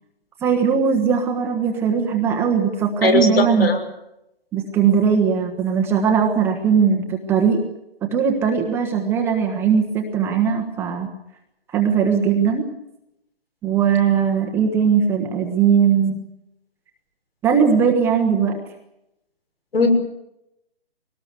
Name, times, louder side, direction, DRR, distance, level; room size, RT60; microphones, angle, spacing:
voice 1, 0.4-3.7 4.5-7.6 8.0-11.1 11.7-12.7 13.6-16.2 17.4-18.6, right 7 dB, 5° right, 2 dB, 1.2 m, -19 dB
voice 2, 3.0-3.8 19.7-19.9, left 3 dB, 70° left, 5 dB, 6.4 m, -18 dB
22.5 x 19.0 x 8.2 m, 0.85 s
hypercardioid pair, 160°, 31 cm